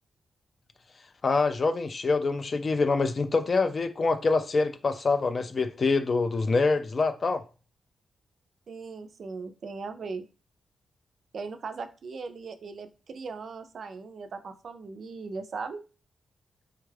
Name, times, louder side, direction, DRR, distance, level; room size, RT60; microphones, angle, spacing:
voice 1, 1.2-7.4, left 3 dB, 35° left, 0.3 m, -25 dB
voice 2, 8.7-10.2 11.3-15.8, right 4 dB, 50° right, 0.4 m, -38 dB
3.4 x 2.3 x 3.2 m
wide cardioid pair, 165°, 0 cm